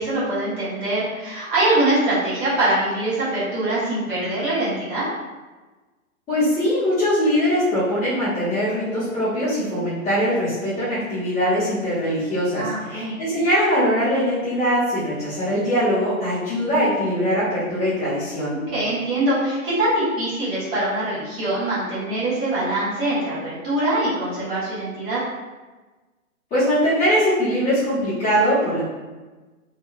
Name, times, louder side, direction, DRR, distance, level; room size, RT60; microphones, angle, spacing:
voice 1, 0.0-5.0 12.6-13.2 18.5-25.2, right 1 dB, 35° right, -10 dB, 1.1 m, -23 dB
voice 2, 6.3-18.6 26.5-28.8, equal, 15° left, -14 dB, 0.9 m, -21 dB
2.7 x 2.3 x 2.3 m, 1.2 s
hypercardioid pair, 155°, 42 cm